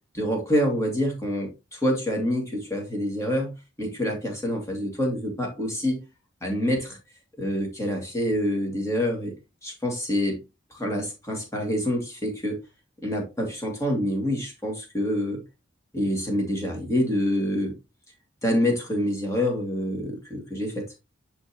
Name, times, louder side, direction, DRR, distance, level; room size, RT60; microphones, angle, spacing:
voice 1, 0.1-6.0 6.4-7.0 7.4-9.3 9.6-10.4 10.7-12.6 13.0-15.4 15.9-17.7 18.4-20.9, equal, 15° left, 2.2 m, -26 dB
10.5 x 3.8 x 3.0 m
head